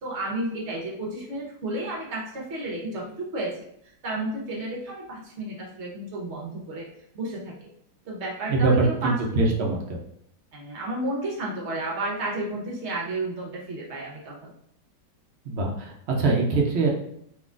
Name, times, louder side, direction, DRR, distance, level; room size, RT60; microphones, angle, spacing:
voice 1, 0.0-3.5 4.0-6.8 7.1-7.7 8.0-9.1 10.5-14.5, right 2 dB, 50° right, -3 dB, 1.0 m, -32 dB
voice 2, 8.5-10.0 15.4-16.9, right 3 dB, 85° right, 0 dB, 0.5 m, -23 dB
3.7 x 2.9 x 2.4 m, 0.72 s
omnidirectional pair, 1.9 m